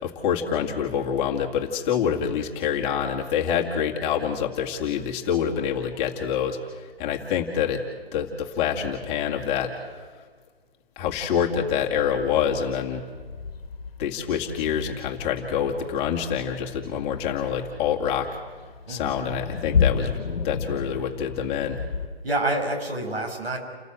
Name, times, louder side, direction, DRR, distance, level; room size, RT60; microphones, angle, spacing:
voice 1, 0.0-7.8 8.1-9.7 11.0-13.0 14.0-18.3 18.9-20.2 20.4-21.8, left 8 dB, 20° left, 0 dB, 2.1 m, -26 dB
sound 1, 11.0-22.1, left 6 dB, 70° left, 1.5 m, -32 dB
voice 2, 18.9-19.2 22.2-23.6, right 2 dB, 80° right, 2 dB, 7.0 m, -27 dB
30.0 x 13.5 x 7.7 m, 1.6 s
figure-of-eight pair, 145°, 30 cm